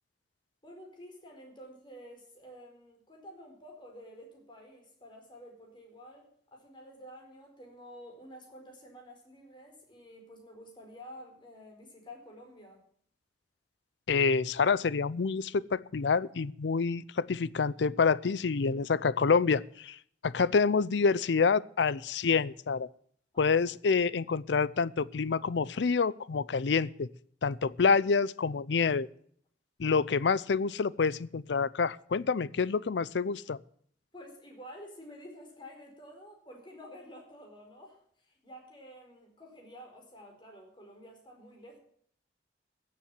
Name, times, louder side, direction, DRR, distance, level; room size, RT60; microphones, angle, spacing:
voice 1, 0.6-12.8 23.3-23.6 34.1-41.8, equal, 30° left, 1 dB, 4.4 m, -50 dB
voice 2, 14.1-20.0 20.2-22.9 23.4-27.1 27.4-29.1 29.8-33.6, left 5 dB, 85° left, 20 dB, 0.5 m, -27 dB
15.5 x 7.5 x 7.2 m, 0.62 s
head